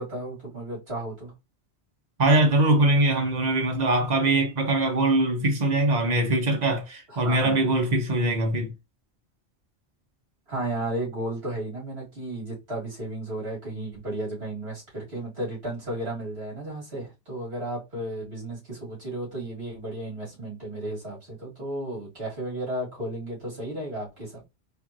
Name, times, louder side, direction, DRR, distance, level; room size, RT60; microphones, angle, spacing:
voice 1, 0.0-1.3 7.1-7.7 10.5-24.5, right 1 dB, 70° right, 2.5 m, -34 dB
voice 2, 2.2-8.7, right 2 dB, 40° right, 1.0 m, -22 dB
4.5 x 2.5 x 2.9 m
omnidirectional pair, 1.1 m